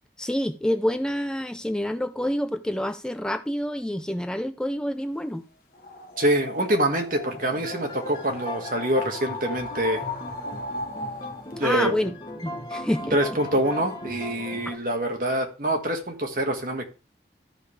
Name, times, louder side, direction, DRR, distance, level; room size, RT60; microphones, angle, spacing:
voice 1, 0.2-5.4 11.6-12.1 12.4-13.2, left 1 dB, 5° left, 0.3 m, -27 dB
sound 1, 5.7-11.5, left 3 dB, 55° left, 1.1 m, -37 dB
voice 2, 6.2-10.0 11.6-11.9 13.1-16.9, right 1 dB, 50° right, 1.5 m, -25 dB
sound 2, 7.2-14.8, left 1 dB, 25° left, 1.2 m, -37 dB
13.5 x 5.4 x 3.2 m
head